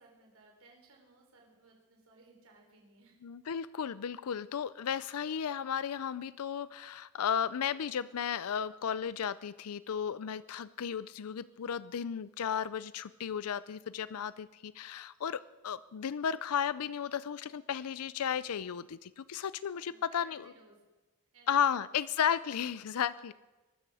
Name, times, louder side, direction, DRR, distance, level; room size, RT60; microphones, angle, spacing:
voice 1, 0.0-3.2 19.8-20.8 21.3-21.9, right 3 dB, 70° right, 1 dB, 3.8 m, -61 dB
voice 2, 3.2-20.5 21.5-23.3, left 8 dB, 80° left, 17 dB, 0.4 m, -34 dB
22.5 x 13.0 x 4.9 m, 1.2 s
head